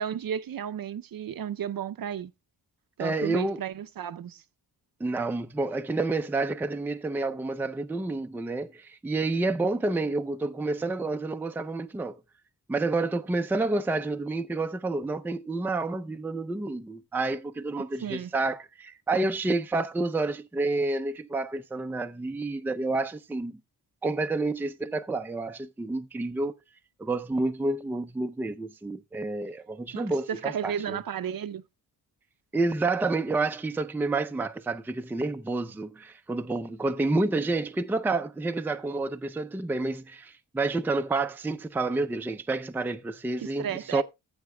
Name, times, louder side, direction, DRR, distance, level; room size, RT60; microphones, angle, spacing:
voice 1, 0.0-2.3 3.0-4.4 18.0-18.3 29.9-31.6 43.4-44.0, right 8 dB, 60° right, 0.6 m, -33 dB
voice 2, 3.0-3.6 5.0-12.2 12.7-23.5 24.0-26.5 27.0-31.0 32.5-44.0, right 2 dB, 5° right, 0.4 m, -29 dB
14.5 x 7.9 x 2.2 m
wide cardioid pair, 130°, 40 cm